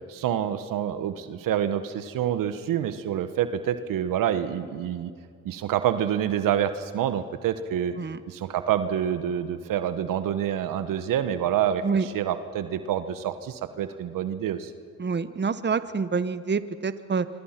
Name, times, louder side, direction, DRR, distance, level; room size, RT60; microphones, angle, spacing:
voice 1, 0.1-5.1 5.4-7.9 8.3-14.7, right 10 dB, 75° right, 11 dB, 1.2 m, -27 dB
voice 2, 15.0-17.3, right 5 dB, 35° right, 13 dB, 1.1 m, -27 dB
25.0 x 25.0 x 5.9 m, 2.2 s
supercardioid pair, 50°, 33 cm